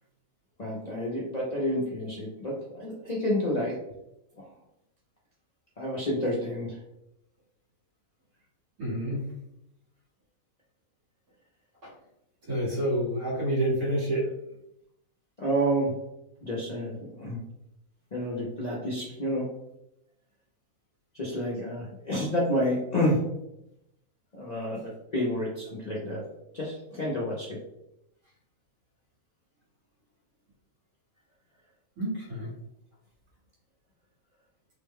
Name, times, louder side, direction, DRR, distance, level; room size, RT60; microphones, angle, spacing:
voice 1, 0.6-3.7 4.4-4.5 5.8-6.8 15.4-15.9 16.4-17.4 18.1-19.5 21.1-23.2 24.3-26.2 26.5-27.6, equal, 45° left, -5 dB, 0.5 m, -29 dB
voice 2, 8.8-9.3 11.8-11.9 12.4-14.3 32.0-32.5, right 1 dB, 75° right, -6 dB, 2.0 m, -28 dB
3.7 x 2.2 x 3.5 m, 0.84 s
omnidirectional pair, 1.5 m